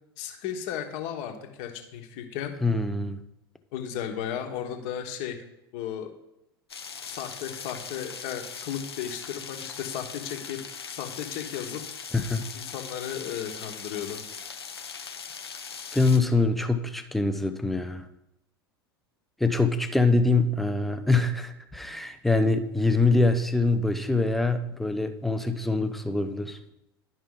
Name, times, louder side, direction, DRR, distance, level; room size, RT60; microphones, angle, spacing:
voice 1, 0.2-2.5 3.7-5.4 5.7-6.1 7.0-10.6 10.9-11.8 12.2-14.2, left 9 dB, 50° left, 5 dB, 1.3 m, -35 dB
voice 2, 2.6-3.2 12.2-12.5 15.9-18.0 19.4-26.6, left 3 dB, ahead, 8 dB, 0.6 m, -24 dB
sound 1, 6.7-16.2, left 6 dB, 80° left, 0.8 m, -40 dB
11.5 x 5.3 x 3.8 m, 0.88 s
figure-of-eight pair, 85°, 13 cm